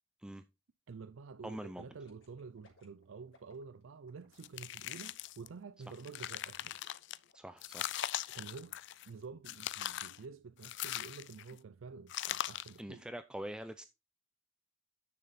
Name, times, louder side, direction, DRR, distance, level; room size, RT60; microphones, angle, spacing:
voice 1, 0.9-6.8 8.3-8.8 9.1-13.1, right 5 dB, 85° right, 0.5 m, -49 dB
voice 2, 1.4-1.9 7.3-7.9 12.8-13.9, right 1 dB, 5° right, 0.4 m, -44 dB
sound 1, 2.0-7.8 8.2-8.3, left 3 dB, 80° left, 3.3 m, -68 dB
sound 2, 4.4-5.5 5.9-7.2 7.6-9.1 9.4-10.2 10.6-11.5 12.1-12.8, left 12 dB, 60° left, 0.4 m, -40 dB
9.7 x 6.8 x 4.0 m
head